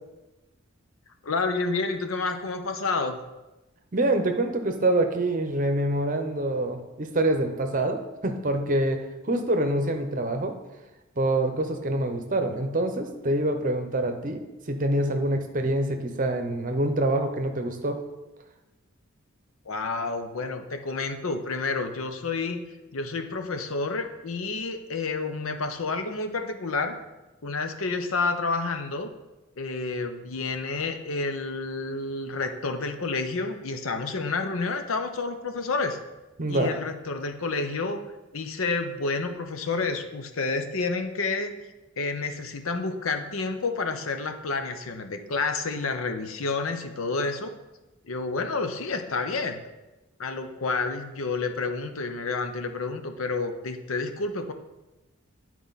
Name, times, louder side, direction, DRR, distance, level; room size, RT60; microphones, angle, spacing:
voice 1, 1.2-3.2 19.7-22.6 22.9-27.0 27.4-29.1 29.6-36.0 36.5-38.0 38.3-41.5 42.0-47.5 48.0-49.6 50.2-54.5, left 3 dB, 80° left, 7 dB, 0.8 m, -29 dB
voice 2, 3.9-10.5 11.2-14.4 14.7-18.0 36.4-36.7, right 1 dB, 40° right, 6 dB, 0.8 m, -26 dB
10.0 x 4.6 x 4.1 m, 1.1 s
head